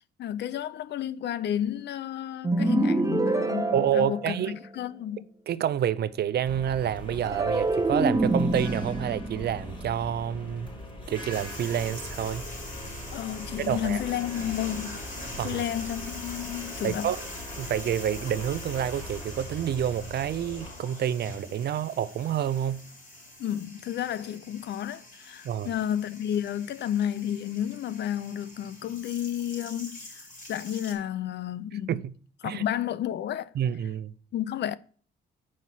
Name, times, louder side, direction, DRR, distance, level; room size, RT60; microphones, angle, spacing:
voice 1, 0.2-5.2 13.1-15.0 15.4-17.1 23.4-31.9 32.4-33.5 34.3-34.7, left 10 dB, 60° left, 0.5 m, -31 dB
sound 1, 2.4-4.8 7.2-10.6, right 2 dB, 15° right, 0.6 m, -27 dB
voice 2, 3.7-4.5 5.5-10.7 11.1-12.5 13.7-14.0 15.4-15.6 16.8-17.2 17.6-22.8 25.4-25.7 31.9-32.1 32.4-32.6 33.6-34.1, right 9 dB, 55° right, 0.5 m, -28 dB
sound 2, 6.5-20.7, equal, 25° left, 3.4 m, -41 dB
sound 3, 11.3-30.9, left 2 dB, 45° left, 3.9 m, -44 dB
6.4 x 5.3 x 5.6 m
cardioid pair, 90°, 20 cm